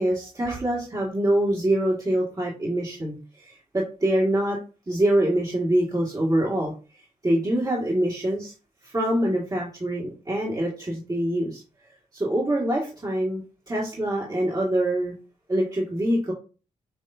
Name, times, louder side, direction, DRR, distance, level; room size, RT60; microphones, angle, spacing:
voice 1, 0.0-4.6 4.9-6.7 7.2-8.5 8.8-11.6 12.1-15.1 15.5-16.3, right 1 dB, 30° right, -4 dB, 2.0 m, -25 dB
6.5 x 3.0 x 2.7 m, 0.35 s
supercardioid pair, 45°, 13 cm